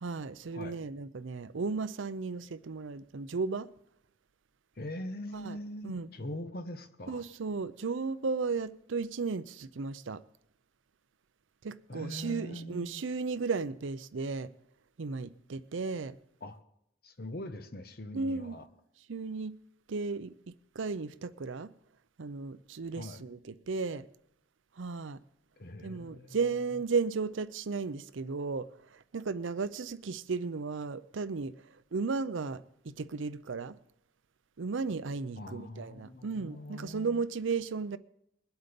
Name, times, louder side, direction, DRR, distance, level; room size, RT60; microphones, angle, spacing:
voice 1, 0.0-3.7 5.3-5.6 5.8-6.1 7.1-10.2 11.6-14.5 15.0-16.2 18.1-18.6 19.1-19.5 19.9-21.7 22.2-24.0 24.8-25.2 25.8-31.5 31.9-33.8 34.6-38.0, right 4 dB, 75° right, 0.6 m, -35 dB
voice 2, 4.8-7.3 11.9-13.0 16.4-16.6 17.0-18.7 22.9-23.2 25.6-26.8 35.4-37.2, left 1 dB, 50° left, 1.0 m, -42 dB
21.0 x 8.0 x 5.2 m
head